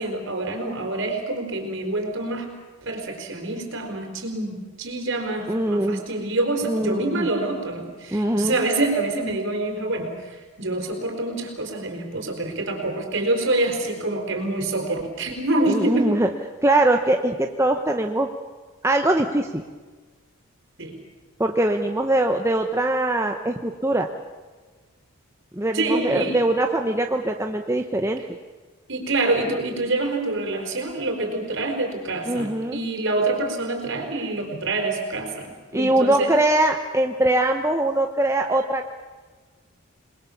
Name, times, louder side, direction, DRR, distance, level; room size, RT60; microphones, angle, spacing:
voice 1, 0.0-2.5 2.8-16.1 20.8-20.9 25.7-26.4 28.9-36.3, right 2 dB, 55° right, 3 dB, 4.9 m, -26 dB
voice 2, 5.5-6.0 6.6-7.3 8.1-8.5 15.7-16.3 16.6-18.3 18.8-19.6 21.4-24.1 25.5-28.2 32.3-32.8 35.7-38.9, right 1 dB, 10° right, 4 dB, 0.9 m, -22 dB
27.5 x 21.0 x 7.3 m, 1.3 s
head